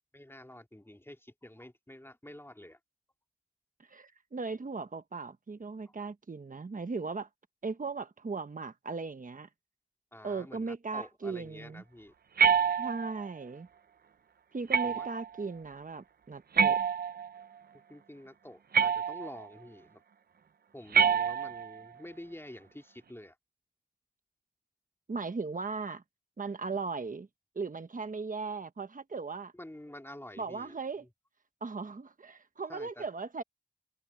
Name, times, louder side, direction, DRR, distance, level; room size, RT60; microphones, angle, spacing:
voice 1, 0.1-2.8 5.8-5.9 10.1-12.1 14.8-15.1 17.9-20.0 20.7-23.3 29.5-30.8 32.7-33.1, left 1 dB, 15° left, 2.7 m, -48 dB
voice 2, 3.9-7.3 7.6-9.5 10.2-11.8 12.8-13.7 14.5-16.8 25.1-26.0 26.4-27.3 27.5-29.5 30.4-31.0 31.6-33.4, right 4 dB, 60° right, 1.1 m, -37 dB
sound 1, 12.4-13.3 14.7-15.3 16.6-17.4 18.7-19.5 20.9-21.8, right 6 dB, 90° right, 0.5 m, -27 dB
wide cardioid pair, 45°, 15 cm